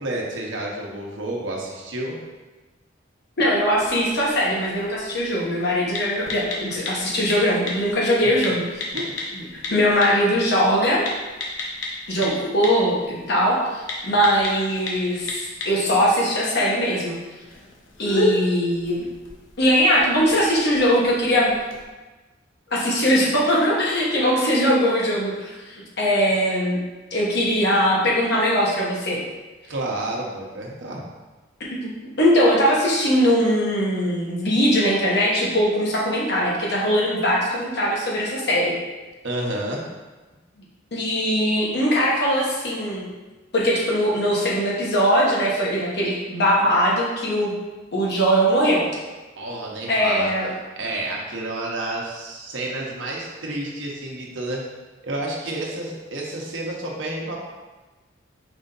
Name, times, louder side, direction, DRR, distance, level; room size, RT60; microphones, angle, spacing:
voice 1, 0.0-2.2 8.9-9.1 9.6-9.7 29.7-31.0 39.2-39.8 49.4-50.3 50.8-54.6 55.0-57.4, right 1 dB, 70° right, -2 dB, 0.9 m, -30 dB
voice 2, 3.4-8.6 9.3-11.0 12.1-17.1 18.0-19.0 19.6-21.5 22.7-26.8 27.1-29.2 31.6-31.9 32.2-38.7 40.9-43.1 43.5-47.5 47.9-48.9 49.9-50.5, equal, 60° left, -4 dB, 1.1 m, -21 dB
sound 1, 3.6-21.8, left 2 dB, 75° left, 0.8 m, -33 dB
4.8 x 2.6 x 3.9 m, 1.2 s
head